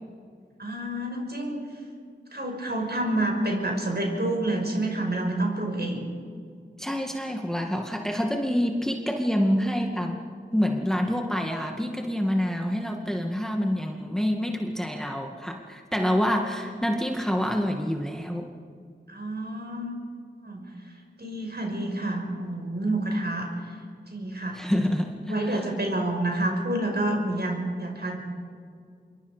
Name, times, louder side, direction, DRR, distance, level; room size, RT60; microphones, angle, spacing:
voice 1, 0.6-1.6 2.3-6.1 19.1-19.9 20.4-20.7 21.2-23.5 24.1-24.6 25.3-28.2, right 1 dB, 55° right, 1 dB, 5.8 m, -28 dB
voice 2, 6.8-10.2 10.5-18.5 24.5-25.7, equal, 5° left, 2 dB, 2.2 m, -27 dB
26.5 x 23.5 x 5.2 m, 2.2 s
wide cardioid pair, 50°, 20 cm